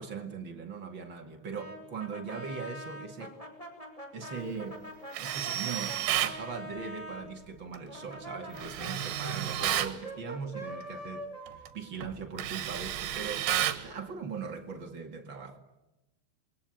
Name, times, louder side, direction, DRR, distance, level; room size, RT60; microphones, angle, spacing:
voice 1, 0.0-3.4 4.1-4.8 5.2-15.6, right 5 dB, 40° right, 1.8 m, -40 dB
Brass instrument, 1.5-7.3 7.9-12.6, equal, 10° left, 4.8 m, -44 dB
Tools, 5.1-6.4 8.6-10.0 11.5-11.7 12.0-13.9, right 12 dB, 75° right, 3.3 m, -31 dB
28.5 x 22.5 x 9.1 m
omnidirectional pair, 4.9 m